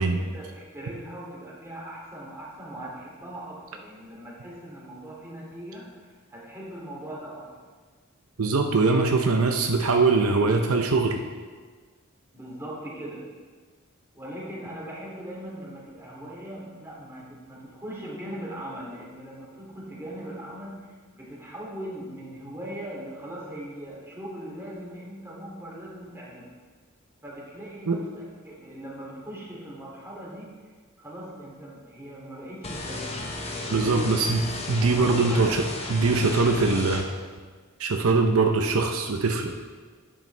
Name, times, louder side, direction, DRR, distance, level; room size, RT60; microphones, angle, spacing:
voice 1, 0.0-7.5 8.7-10.7 12.3-13.3 14.1-26.5 27.2-30.7 31.0-33.2 33.5-34.3 34.8-36.5, right 1 dB, 15° right, -5 dB, 2.7 m, -40 dB
voice 2, 8.4-11.2 27.9-28.0 33.7-35.6 35.9-37.1 37.8-39.5, right 3 dB, 75° right, 3 dB, 0.7 m, -22 dB
sound 1, 32.6-37.0, left 2 dB, 30° left, 0.9 m, -34 dB
10.5 x 8.9 x 3.4 m, 1.5 s
head